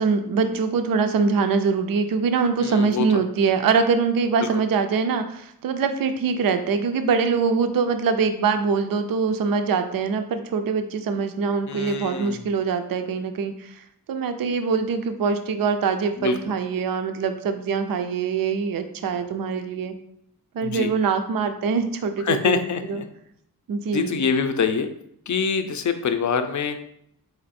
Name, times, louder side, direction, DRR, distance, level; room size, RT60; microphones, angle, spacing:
voice 1, 0.0-19.9 20.5-22.6 22.9-23.0 23.7-24.2, right 5 dB, 65° right, 8 dB, 0.5 m, -23 dB
voice 2, 2.6-3.0 4.4-4.5 11.7-12.4 16.2-16.4 20.6-20.9 22.3-23.0 23.9-24.9 25.3-26.8, left 6 dB, 50° left, 8 dB, 0.5 m, -25 dB
4.4 x 2.5 x 4.1 m, 0.73 s
wide cardioid pair, 95°, 37 cm